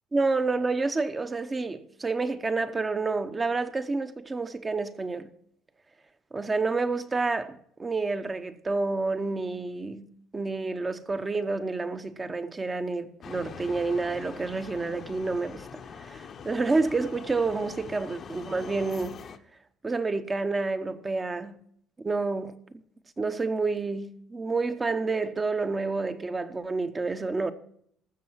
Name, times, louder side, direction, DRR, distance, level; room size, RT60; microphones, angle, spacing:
voice 1, 0.1-5.3 6.3-15.7 16.0-19.2 19.8-21.6 22.0-22.6 23.2-27.5, right 3 dB, 20° right, 0.8 m, -29 dB
sound 1, 13.2-19.4, left 6 dB, 40° left, 0.9 m, -44 dB
14.0 x 6.7 x 7.4 m
cardioid pair, 130°, 0 cm